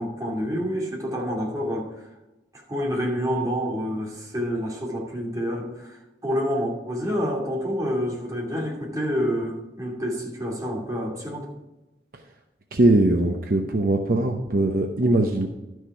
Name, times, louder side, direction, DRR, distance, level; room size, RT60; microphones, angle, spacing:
voice 1, 0.0-1.9 2.7-6.0 6.2-11.5, equal, 20° right, -3 dB, 2.6 m, -28 dB
voice 2, 12.7-15.5, right 2 dB, 55° right, 3 dB, 0.8 m, -21 dB
12.5 x 6.4 x 4.7 m, 1.0 s
head